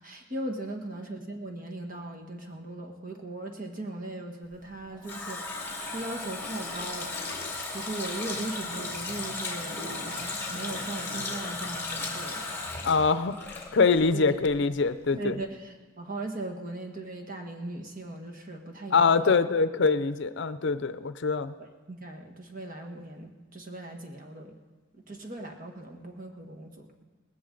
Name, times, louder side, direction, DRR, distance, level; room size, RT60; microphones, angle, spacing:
voice 1, 0.0-5.5 5.9-7.1 7.7-12.6 14.1-14.4 15.1-19.4 21.9-24.6 25.1-27.0, right 2 dB, 45° right, 3 dB, 1.6 m, -38 dB
Water tap faucet, 4.6-14.2 14.5-14.6, left 3 dB, 10° left, 2.5 m, -36 dB
voice 2, 12.8-13.4 13.7-15.4 18.9-21.5, left 4 dB, 65° left, 13 dB, 0.5 m, -24 dB
19.0 x 16.0 x 3.9 m, 1.3 s
head